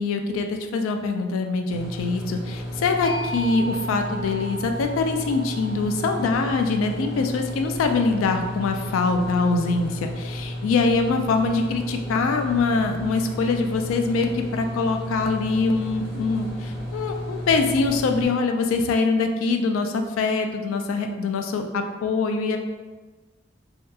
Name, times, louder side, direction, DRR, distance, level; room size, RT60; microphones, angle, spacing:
voice 1, 0.0-22.6, left 4 dB, 85° left, 5 dB, 0.3 m, -24 dB
sound 1, 1.7-18.3, equal, 5° right, 1.1 m, -33 dB
sound 2, 3.0-9.0, right 2 dB, 25° right, 0.6 m, -38 dB
2.7 x 2.2 x 2.3 m, 1.3 s
head